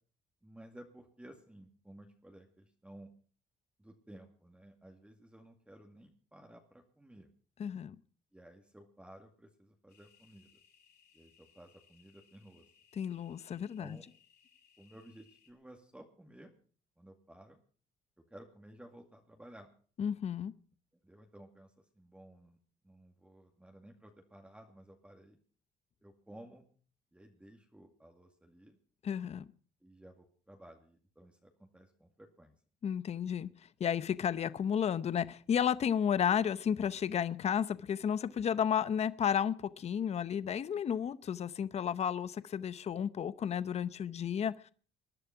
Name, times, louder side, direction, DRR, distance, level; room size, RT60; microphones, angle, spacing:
voice 1, 0.4-3.1 3.8-7.3 8.3-10.5 11.1-12.7 13.8-14.1 14.8-16.5 17.0-17.6 18.3-19.7 21.0-22.6 22.8-25.4 26.0-26.7 27.1-28.7 29.8-32.6, right 1 dB, 5° right, 2.2 m, -55 dB
voice 2, 7.6-8.0 13.0-14.0 20.0-20.5 29.0-29.4 32.8-33.5 33.8-44.7, left 8 dB, 40° left, 0.8 m, -32 dB
sound 1, 9.9-15.5, left 8 dB, 70° left, 6.8 m, -67 dB
20.0 x 11.0 x 5.9 m
cardioid pair, 110°, 17 cm